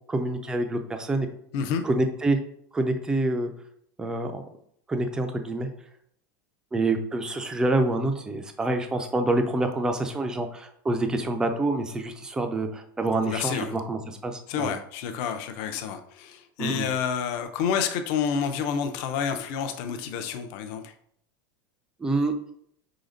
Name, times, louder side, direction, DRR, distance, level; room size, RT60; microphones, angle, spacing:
voice 1, 0.1-1.3 1.8-2.4 2.7-3.5 4.0-4.4 4.9-5.7 6.7-14.7 16.6-16.9 22.0-22.3, right 2 dB, 5° right, 5 dB, 0.4 m, -27 dB
voice 2, 13.0-13.7 14.5-20.9, left 7 dB, 40° left, 7 dB, 0.6 m, -29 dB
4.9 x 3.9 x 5.0 m, 0.69 s
supercardioid pair, 180°, 12 cm